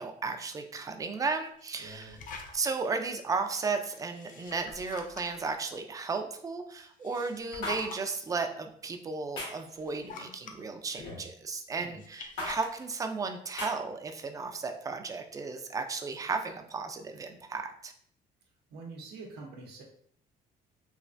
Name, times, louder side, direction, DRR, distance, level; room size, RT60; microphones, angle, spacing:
voice 1, 0.0-2.2 2.5-17.9, right 4 dB, 20° right, 5 dB, 0.3 m, -34 dB
sound 1, 1.6-2.9 3.9-5.5 6.8-8.2 8.9-9.0 9.6-10.6 11.9-12.9, left 4 dB, 50° left, 0.5 m, -45 dB
voice 2, 1.8-2.2 11.8-12.0 18.7-19.8, right 3 dB, 85° right, -1 dB, 0.7 m, -45 dB
sound 2, 7.6-7.8 9.4-9.6 11.0-11.3 12.4-12.5 13.6-13.7, left 2 dB, 75° left, 1.4 m, -36 dB
3.2 x 2.3 x 2.5 m, 0.63 s
cardioid pair, 110°, 17 cm